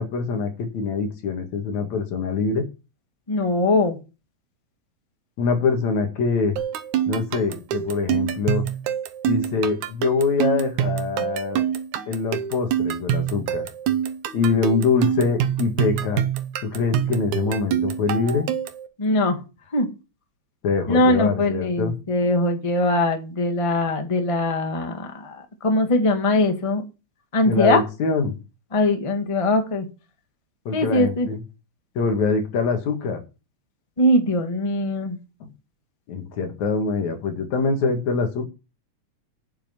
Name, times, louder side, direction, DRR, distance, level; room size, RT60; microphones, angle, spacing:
voice 1, 0.0-2.7 5.4-6.5 7.1-8.6 9.2-11.6 12.1-13.6 14.3-16.2 16.6-18.5 20.6-21.9 27.5-28.4 30.7-31.4 32.0-33.2 36.1-38.5, left 4 dB, 75° left, 4 dB, 3.2 m, -24 dB
voice 2, 3.3-4.0 19.0-19.4 19.7-19.9 20.9-25.3 25.6-26.8 27.3-27.8 28.7-29.9 30.7-31.3 34.0-35.2, left 1 dB, 20° left, 5 dB, 1.0 m, -21 dB
sound 1, 6.6-18.9, right 10 dB, 85° right, 2.4 m, -25 dB
8.8 x 7.5 x 5.7 m, 0.30 s
omnidirectional pair, 3.3 m